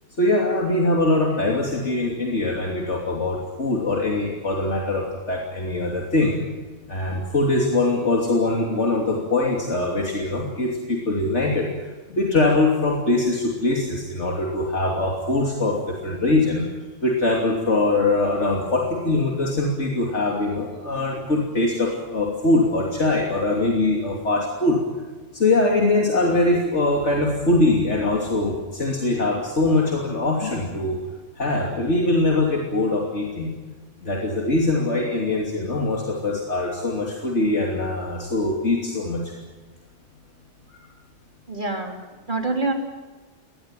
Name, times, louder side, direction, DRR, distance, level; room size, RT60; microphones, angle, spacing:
voice 1, 0.2-6.4 6.9-16.7 17.0-24.8 25.3-31.0 31.4-33.5 34.0-39.3, left 2 dB, 70° left, -1 dB, 3.3 m, -22 dB
voice 2, 41.5-42.0 42.3-42.7, right 3 dB, 40° right, 3 dB, 3.6 m, -25 dB
22.0 x 19.0 x 9.1 m, 1.3 s
omnidirectional pair, 1.3 m